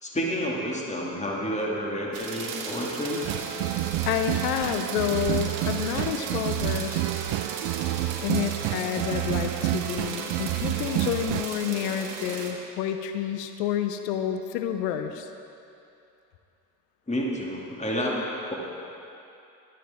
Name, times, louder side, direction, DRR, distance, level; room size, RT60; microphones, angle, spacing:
voice 1, 0.0-3.2 17.1-18.2 18.5-18.6, equal, 15° left, -3 dB, 2.5 m, -29 dB
sound 1, 2.1-12.5, right 5 dB, 70° right, 1.4 m, -37 dB
sound 2, 3.2-11.5, right 17 dB, 55° right, 0.5 m, -29 dB
voice 2, 4.0-7.0 8.2-15.3, left 9 dB, 70° left, 8 dB, 1.0 m, -29 dB
23.5 x 8.5 x 3.7 m, 2.8 s
figure-of-eight pair, 40°, 49 cm